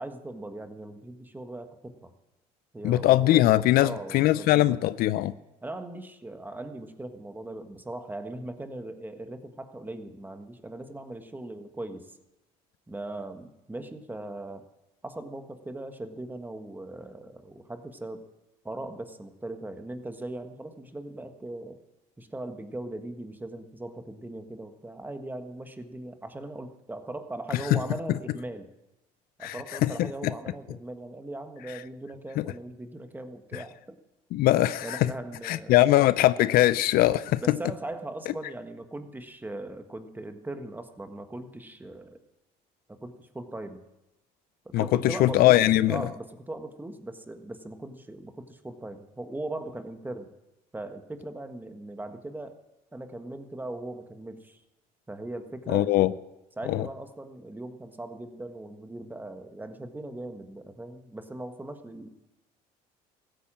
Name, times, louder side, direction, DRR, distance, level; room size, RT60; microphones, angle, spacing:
voice 1, 0.0-2.1 2.7-4.8 5.6-12.1 12.9-14.6 15.0-18.2 18.6-21.8 22.2-28.7 29.4-34.0 34.8-35.8 37.4-42.2 43.0-43.8 44.6-50.3 50.7-52.6 52.9-54.6 55.1-56.1 56.6-62.1, right 2 dB, 10° right, 8 dB, 1.4 m, -39 dB
voice 2, 2.8-5.3 27.5-27.8 29.4-30.3 32.4-32.5 33.5-33.6 34.3-35.1 35.4-37.6 44.7-46.1 55.7-56.1 56.7-56.9, left 15 dB, 65° left, 16 dB, 0.5 m, -22 dB
15.0 x 9.1 x 7.4 m, 0.99 s
supercardioid pair, 95°, 16 cm